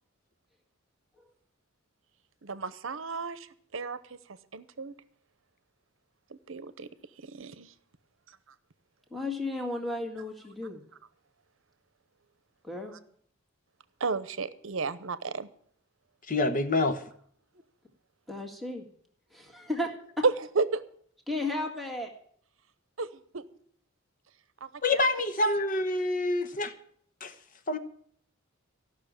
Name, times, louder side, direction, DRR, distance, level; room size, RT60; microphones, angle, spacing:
voice 1, 2.4-4.2 4.5-4.9 6.3-6.9 7.2-7.7 14.0-15.5 20.2-20.8 23.0-23.4 24.6-25.1, right 4 dB, 70° right, 0.8 m, -32 dB
voice 2, 9.1-10.8 12.6-13.0 18.3-18.9 19.3-20.2 21.3-22.1, left 2 dB, ahead, 1.8 m, -34 dB
voice 3, 16.3-17.0 24.8-26.7 27.2-27.3 27.7-27.8, left 2 dB, 40° left, 1.1 m, -27 dB
14.5 x 6.3 x 8.9 m
head